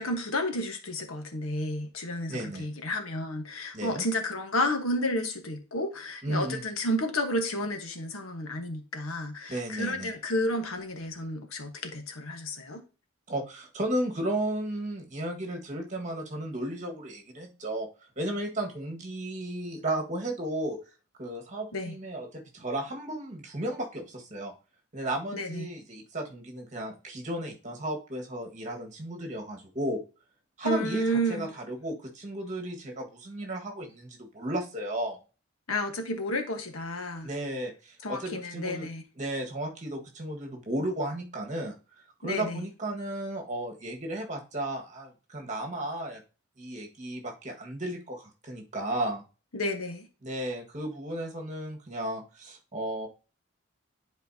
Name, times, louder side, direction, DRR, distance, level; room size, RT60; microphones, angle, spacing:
voice 1, 0.0-12.8 21.7-22.0 25.3-25.7 30.6-31.5 35.7-37.3 38.0-39.0 42.2-42.7 49.5-50.1, left 1 dB, 80° left, 1.3 m, -31 dB
voice 2, 2.3-2.7 3.7-4.0 6.2-6.6 9.5-10.1 13.3-17.9 18.1-20.8 21.2-24.5 24.9-30.0 30.6-35.2 37.2-38.9 39.2-41.7 42.2-46.2 46.6-49.2 50.2-53.1, right 1 dB, 35° right, 1.7 m, -34 dB
10.5 x 4.4 x 2.8 m
head